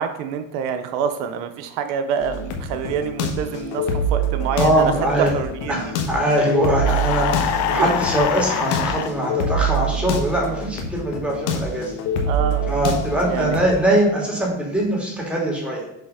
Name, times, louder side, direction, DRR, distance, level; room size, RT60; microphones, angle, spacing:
voice 1, 0.0-5.9 7.8-7.9 12.2-12.7 13.3-13.5, right 7 dB, 85° right, 8 dB, 0.7 m, -26 dB
sound 1, 2.2-13.9, right 1 dB, 80° left, 1.3 m, -26 dB
voice 2, 4.5-5.3 5.7-12.0 12.7-15.8, right 1 dB, 5° right, -3 dB, 2.4 m, -22 dB
sound 2, 6.8-9.1, left 10 dB, 60° left, 0.7 m, -24 dB
6.8 x 3.5 x 5.5 m, 0.79 s
supercardioid pair, 115°, 35 cm